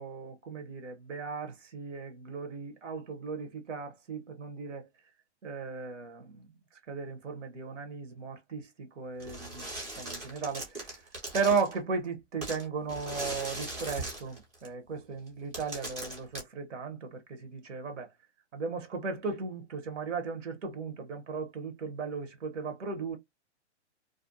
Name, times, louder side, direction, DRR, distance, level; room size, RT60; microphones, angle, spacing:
voice 1, 0.0-4.9 5.4-6.5 6.9-9.7 10.0-11.0 11.3-18.1 18.5-23.2, right 5 dB, 85° right, 0.9 m, -36 dB
sound 1, 9.2-11.8 12.4-14.7 15.3-15.4 15.5-16.4, right 2 dB, 10° right, 0.4 m, -39 dB
2.5 x 2.0 x 2.6 m
hypercardioid pair, 155°, 36 cm